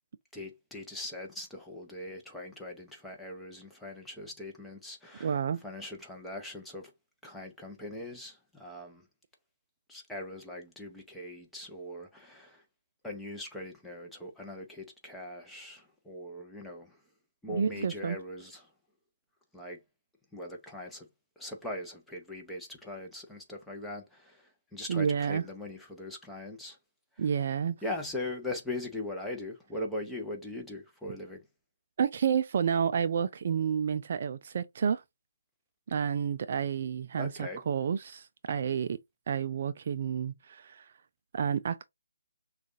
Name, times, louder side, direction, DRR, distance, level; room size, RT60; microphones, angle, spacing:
voice 1, 0.3-5.4 5.6-6.9 7.2-9.0 9.9-12.6 13.0-17.0 17.4-18.7 19.5-19.8 20.3-21.1 21.4-26.8 27.8-31.4 37.2-37.6, left 1 dB, ahead, 0.8 m, -40 dB
voice 2, 5.2-5.6 17.5-18.2 24.9-25.4 27.2-27.8 32.0-35.0 35.9-39.0 39.3-40.9 41.3-41.8, right 7 dB, 40° right, 0.3 m, -30 dB
6.2 x 2.4 x 2.6 m
figure-of-eight pair, 150°, 0 cm